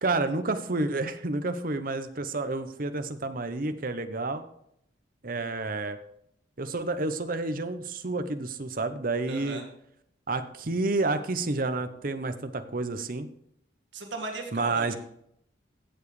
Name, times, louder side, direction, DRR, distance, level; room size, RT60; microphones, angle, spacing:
voice 1, 0.0-4.4 5.2-6.0 6.6-9.6 10.3-13.3 14.5-14.9, right 3 dB, 45° right, 9 dB, 0.8 m, -30 dB
voice 2, 9.3-9.7 13.9-15.0, right 2 dB, 75° right, 3 dB, 1.9 m, -36 dB
15.5 x 7.1 x 3.2 m, 0.72 s
head